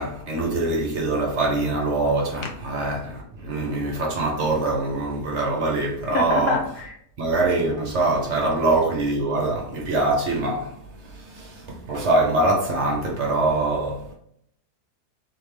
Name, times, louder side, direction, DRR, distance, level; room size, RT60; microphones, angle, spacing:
voice 1, 0.0-6.6 7.2-10.7 11.1-14.0, right 2 dB, 55° right, 1.0 m, -23 dB
voice 2, 6.0-6.9, left 4 dB, 70° left, 1.2 m, -26 dB
3.9 x 3.4 x 3.3 m
omnidirectional pair, 1.7 m